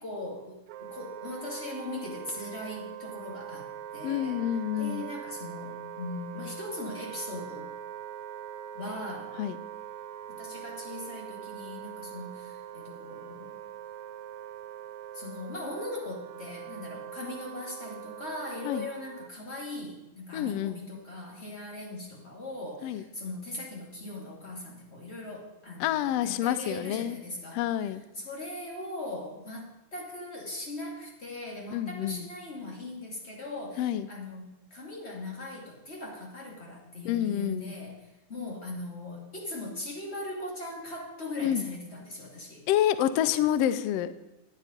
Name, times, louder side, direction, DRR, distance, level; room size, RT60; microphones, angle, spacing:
voice 1, 0.0-4.4 4.8-7.7 8.7-9.3 10.3-13.6 15.1-27.6 28.2-37.9 38.3-42.6, left 2 dB, 25° left, -1 dB, 2.1 m, -39 dB
Wind instrument woodwind instrument, 0.7-19.3, right 10 dB, 80° right, 1.6 m, -42 dB
voice 2, 4.0-5.1 9.4-9.6 18.6-18.9 20.3-20.8 22.8-23.0 25.8-27.2 27.5-28.0 31.7-32.3 33.8-34.1 37.0-37.7 41.4-41.6 42.7-44.1, left 11 dB, 85° left, 13 dB, 1.4 m, -28 dB
12.0 x 9.3 x 5.2 m, 0.94 s
omnidirectional pair, 3.6 m